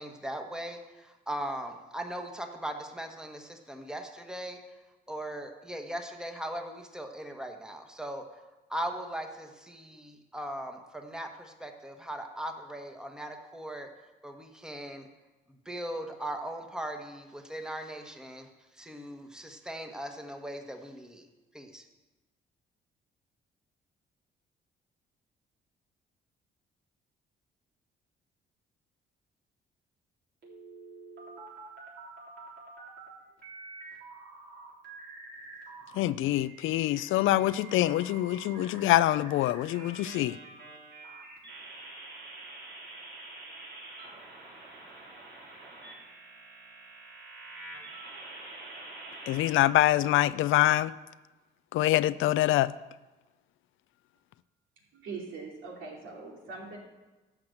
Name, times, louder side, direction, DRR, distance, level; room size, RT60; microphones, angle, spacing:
voice 1, 0.0-4.6 5.1-8.2 8.7-13.9 14.2-15.1 15.6-18.5 18.8-21.3 21.5-21.8, right 1 dB, 5° right, 1.3 m, -39 dB
sound 1, 30.4-33.1 33.4-36.0 36.3-49.5, right 3 dB, 60° right, 3.7 m, -47 dB
voice 2, 36.0-40.3 49.3-50.9 51.7-52.7, left 14 dB, 80° left, 0.4 m, -25 dB
voice 3, 54.9-56.8, right 4 dB, 80° right, 2.9 m, -41 dB
11.5 x 6.1 x 7.8 m
cardioid pair, 90°, 20 cm